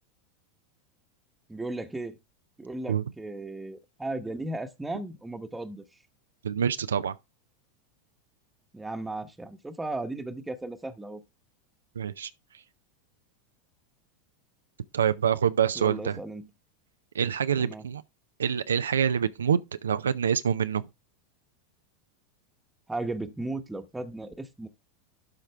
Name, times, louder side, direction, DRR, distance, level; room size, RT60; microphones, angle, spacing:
voice 1, 1.5-2.2 2.6-5.8 8.7-11.2 15.7-16.5 17.6-17.9 22.9-24.7, right 2 dB, 10° right, 1.1 m, -36 dB
voice 2, 6.4-7.1 12.0-12.3 14.9-16.2 17.1-18.0 18.4-20.8, right 8 dB, 85° right, 0.4 m, -26 dB
12.0 x 4.4 x 3.4 m
hypercardioid pair, 90°, 0 cm